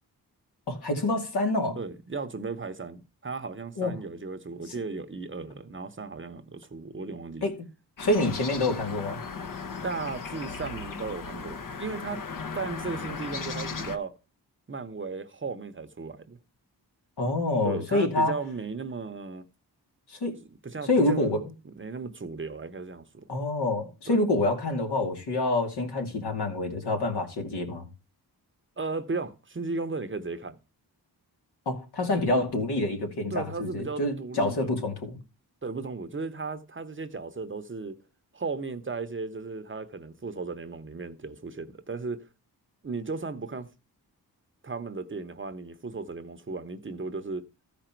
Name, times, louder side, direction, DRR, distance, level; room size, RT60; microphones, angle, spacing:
voice 1, 0.7-1.8 3.8-3.9 4.7-4.8 7.4-7.5 8.0-9.2 17.2-18.3 20.1-20.4 20.9-21.4 23.3-27.9 31.7-35.2, left 2 dB, 80° left, 2.6 m, -27 dB
voice 2, 1.8-7.5 9.8-12.2 12.5-14.1 14.7-16.4 17.6-19.5 20.5-23.3 24.1-24.2 28.8-30.6 33.3-34.8 35.6-38.0 38.3-42.3 42.8-43.7 44.6-47.5, right 4 dB, 30° right, 0.8 m, -35 dB
sound 1, 8.0-14.0, left 4 dB, 55° left, 1.0 m, -37 dB
14.5 x 5.0 x 4.5 m
wide cardioid pair, 110°, 39 cm